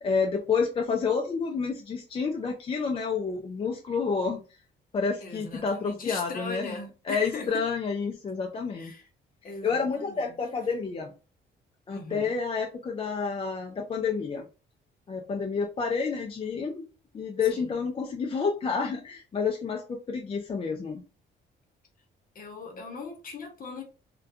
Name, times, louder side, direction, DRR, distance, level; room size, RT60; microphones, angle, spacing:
voice 1, 0.0-4.4 4.9-6.7 7.1-8.9 9.6-11.1 11.9-14.5 15.1-16.9 17.1-21.0, left 5 dB, 30° left, 0.4 m, -29 dB
voice 2, 5.2-7.6 8.7-9.1 9.4-10.4 11.9-12.4 17.5-17.7 22.3-23.8, left 3 dB, 45° left, 0.8 m, -39 dB
2.3 x 2.2 x 2.6 m
cardioid pair, 90°, 20 cm